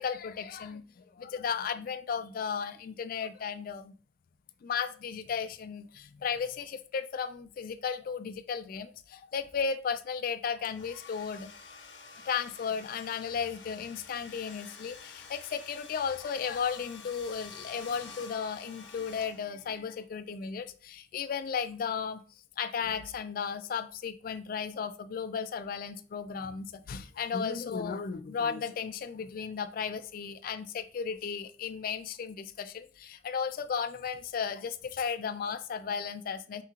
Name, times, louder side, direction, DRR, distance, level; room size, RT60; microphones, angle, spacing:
voice 1, 0.0-3.9 4.6-11.5 12.3-22.2 22.6-36.6, left 6 dB, 50° left, 0.3 m, -35 dB
Domestic sounds home sounds, 10.6-19.8, left 5 dB, 70° left, 0.7 m, -49 dB
4.3 x 3.7 x 2.4 m
head